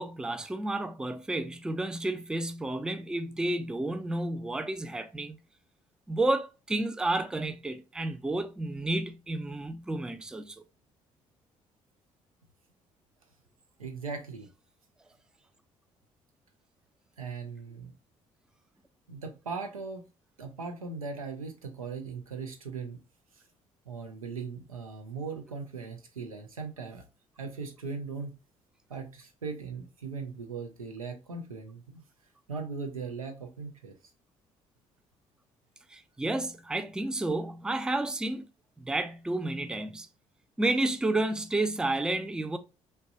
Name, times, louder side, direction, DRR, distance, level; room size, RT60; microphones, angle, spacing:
voice 1, 0.0-5.4 6.1-10.6 35.9-38.4 38.8-40.1 40.6-42.6, right 2 dB, 5° right, 0.3 m, -31 dB
voice 2, 13.8-14.5 17.2-17.9 19.1-20.0 20.4-23.0 23.9-27.0 27.4-28.3 28.9-32.0 32.5-33.9, right 4 dB, 90° right, 0.4 m, -39 dB
3.0 x 2.2 x 2.6 m
figure-of-eight pair, 50°, 17 cm